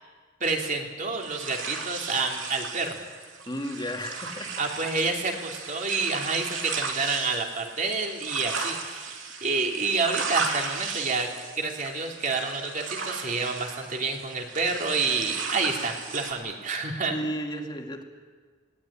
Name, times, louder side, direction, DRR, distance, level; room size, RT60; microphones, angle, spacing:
voice 1, 0.4-3.0 4.6-11.3 11.6-17.2, right 4 dB, 45° right, 2 dB, 3.0 m, -28 dB
sound 1, 1.2-16.3, right 5 dB, 85° right, 3.0 m, -35 dB
voice 2, 3.5-4.6 17.1-18.0, equal, 25° left, 3 dB, 2.3 m, -33 dB
19.0 x 18.0 x 10.0 m, 1.5 s
head